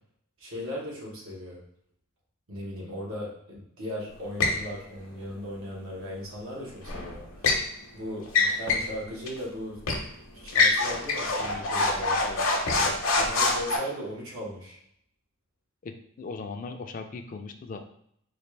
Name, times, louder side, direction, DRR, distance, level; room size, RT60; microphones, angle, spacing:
voice 1, 0.4-1.6 2.5-7.5 7.9-9.9 10.3-12.2 13.2-14.8, equal, 90° right, -4 dB, 1.3 m, -37 dB
sound 1, 4.4-4.6 6.8-7.7 8.3-8.9 9.3-9.4 9.9-10.1 10.5-13.8, left 3 dB, 70° left, 0.7 m, -25 dB
voice 2, 15.8-17.8, left 4 dB, 40° left, 6 dB, 0.3 m, -39 dB
4.1 x 2.4 x 3.2 m, 0.71 s
head